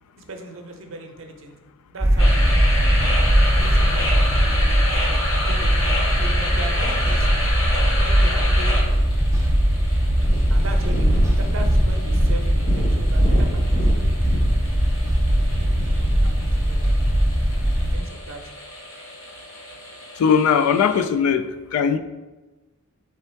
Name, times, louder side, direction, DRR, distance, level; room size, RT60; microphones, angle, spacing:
voice 1, 0.2-1.5 1.9-2.7 3.6-7.3 7.9-9.1 10.5-13.9 14.6-15.0 15.4-16.8 17.9-18.4, right 1 dB, 60° right, 0.6 m, -38 dB
sound 1, 2.0-18.0, equal, 15° right, 0.5 m, -20 dB
sound 2, 2.2-21.0, left 1 dB, 60° left, 1.1 m, -30 dB
Purr, 10.1-16.4 17.1-17.2, equal, 35° left, 0.8 m, -24 dB
voice 2, 20.2-22.0, left 7 dB, 85° left, 0.3 m, -19 dB
3.4 x 3.4 x 4.4 m
head